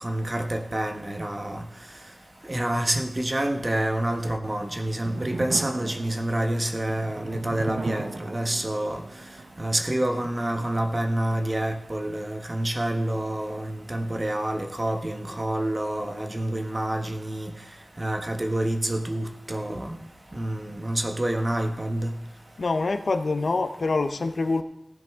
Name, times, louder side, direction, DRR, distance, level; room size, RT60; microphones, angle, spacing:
voice 1, 0.0-1.6 2.5-9.0 9.6-17.5 18.0-20.0 20.3-22.1, right 1 dB, 30° right, 5 dB, 1.3 m, -28 dB
sound 1, 4.7-11.7, right 3 dB, 80° right, 0.8 m, -38 dB
voice 2, 22.6-24.6, left 3 dB, 75° left, 8 dB, 0.8 m, -25 dB
15.5 x 10.5 x 3.7 m, 0.93 s
wide cardioid pair, 75°, 0 cm